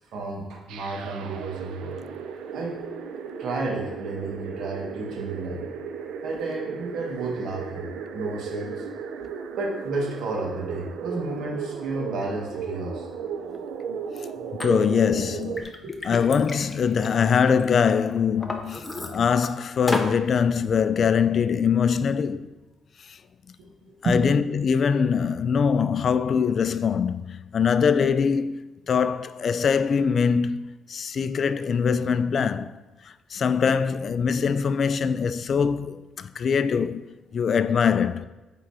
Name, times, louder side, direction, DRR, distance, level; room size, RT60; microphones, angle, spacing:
voice 1, 0.1-2.0 2.5-2.8 3.4-5.7 6.2-8.9 9.2-9.3 9.6-13.1 15.8-16.2 23.6-24.3, right 2 dB, 70° right, 1.3 m, -31 dB
sound 1, 0.7-15.6, right 6 dB, 90° right, 0.6 m, -35 dB
voice 2, 14.5-15.7 16.0-22.5 23.1-23.2 24.0-32.7 33.0-37.1 37.3-38.3, left 6 dB, 45° left, 0.3 m, -23 dB
Liquid, 14.6-14.7 15.2-17.6 18.1-19.5 19.9-20.2, left 2 dB, 15° left, 0.7 m, -33 dB
8.8 x 3.8 x 4.7 m
cardioid pair, 125°, 0 cm